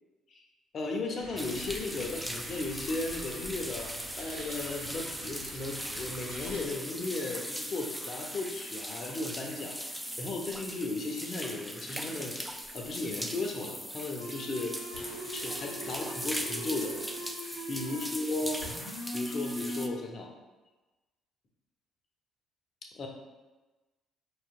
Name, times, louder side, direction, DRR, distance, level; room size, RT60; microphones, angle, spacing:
voice 1, 0.7-9.8 10.2-12.4 12.7-14.8 15.3-17.0 17.7-18.6 19.1-20.3 22.9-23.1, left 3 dB, 45° left, 2 dB, 0.6 m, -35 dB
sound 1, 1.2-6.6, equal, 75° right, 0.7 m, -47 dB
sound 2, 1.4-19.9, equal, ahead, 0.3 m, -39 dB
sound 3, 14.2-18.1 18.6-19.9, equal, 85° left, 0.8 m, -40 dB
5.6 x 2.7 x 2.4 m, 1.2 s
figure-of-eight pair, 50°, 0 cm